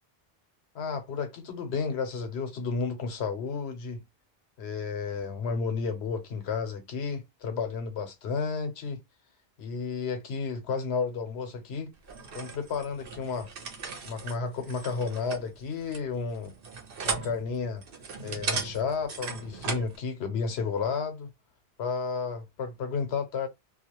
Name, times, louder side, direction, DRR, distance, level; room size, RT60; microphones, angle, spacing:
voice 1, 0.7-4.0 4.6-9.0 9.6-11.9 12.3-13.5 14.0-16.5 17.0-17.8 18.2-21.3 21.8-23.5, left 5 dB, 90° left, 1.0 m, -32 dB
sound 1, 12.0-20.0, right 5 dB, 65° right, 0.9 m, -37 dB
2.4 x 2.2 x 2.9 m
omnidirectional pair, 1.0 m